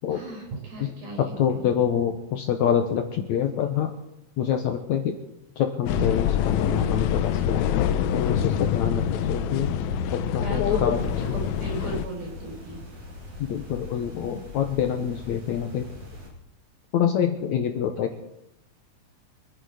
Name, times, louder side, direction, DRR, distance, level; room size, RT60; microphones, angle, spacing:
voice 1, 0.1-1.8 10.4-12.8, right 4 dB, 75° right, -1 dB, 7.5 m, -37 dB
voice 2, 1.2-3.9 4.4-5.1 5.6-7.7 8.1-9.8 10.1-11.0 13.4-15.9 16.9-18.2, left 9 dB, 70° left, 6 dB, 1.9 m, -26 dB
sound 1, 5.9-12.1, left 11 dB, 85° left, 1.6 m, -26 dB
Musical instrument, 6.4-11.5, right 4 dB, 35° left, 2.6 m, -36 dB
sound 2, 10.9-16.3, left 2 dB, 55° right, 5.5 m, -42 dB
25.0 x 10.0 x 4.9 m, 0.84 s
omnidirectional pair, 4.2 m